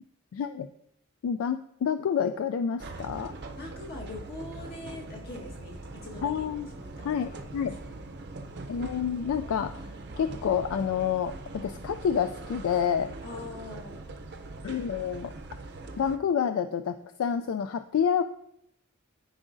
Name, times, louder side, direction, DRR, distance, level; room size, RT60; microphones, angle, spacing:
voice 1, 0.3-0.7 1.2-3.3 6.2-6.7 7.0-7.8 8.7-13.1 14.6-15.3 16.0-18.2, left 7 dB, 70° left, 10 dB, 0.3 m, -28 dB
sound 1, 2.8-16.2, right 2 dB, 50° right, 0.6 m, -42 dB
voice 2, 3.6-7.9 13.2-14.0, left 2 dB, 45° left, -2 dB, 1.6 m, -43 dB
12.0 x 5.0 x 2.6 m, 0.76 s
head